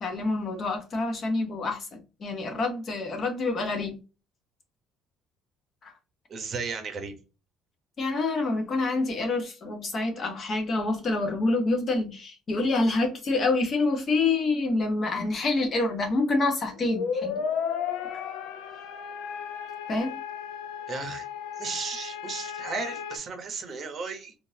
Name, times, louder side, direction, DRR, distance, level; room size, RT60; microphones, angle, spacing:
voice 1, 0.0-4.0 5.8-5.9 8.0-17.4 19.9-20.2, left 3 dB, 30° left, 0.9 m, -27 dB
voice 2, 6.3-7.1 20.9-21.2 21.6-24.3, right 5 dB, 30° right, 0.8 m, -34 dB
sound 1, 16.7-23.2, left 7 dB, 80° left, 0.5 m, -34 dB
3.8 x 2.5 x 2.6 m
cardioid pair, 160°, 0 cm